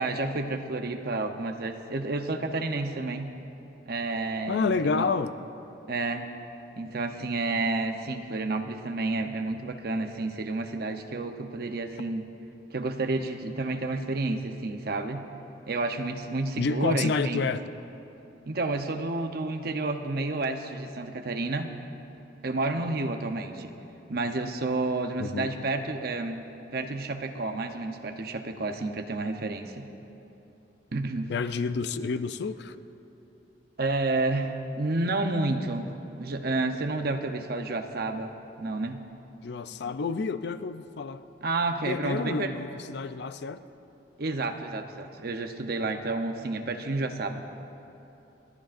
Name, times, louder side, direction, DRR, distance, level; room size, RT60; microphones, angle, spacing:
voice 1, 0.0-3.3 3.9-5.0 5.9-6.3 6.8-12.3 12.7-15.3 15.7-17.5 18.5-21.7 22.4-23.7 24.1-29.9 30.9-31.3 33.8-35.9 36.2-39.0 41.4-42.5 44.2-47.5, right 2 dB, 55° right, 6 dB, 0.8 m, -30 dB
voice 2, 4.5-5.3 16.6-17.6 25.2-25.5 31.3-32.8 39.4-41.2 41.9-43.6, left 4 dB, 60° left, 11 dB, 0.4 m, -29 dB
29.0 x 11.5 x 2.5 m, 2.9 s
head